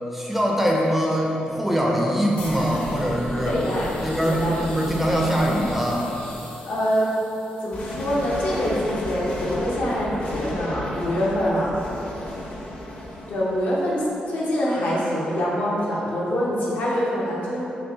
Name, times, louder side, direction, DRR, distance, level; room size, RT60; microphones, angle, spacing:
voice 1, 0.1-3.6 4.0-6.1, equal, 5° right, -2 dB, 0.4 m, -23 dB
sound 1, 2.4-14.2, left 1 dB, 50° left, 0.6 m, -33 dB
voice 2, 3.4-3.9 4.2-4.6 6.7-7.1 7.6-11.7 13.3-17.6, equal, 80° left, -6 dB, 0.8 m, -25 dB
5.2 x 2.0 x 2.7 m, 3.0 s
cardioid pair, 130°, 3 cm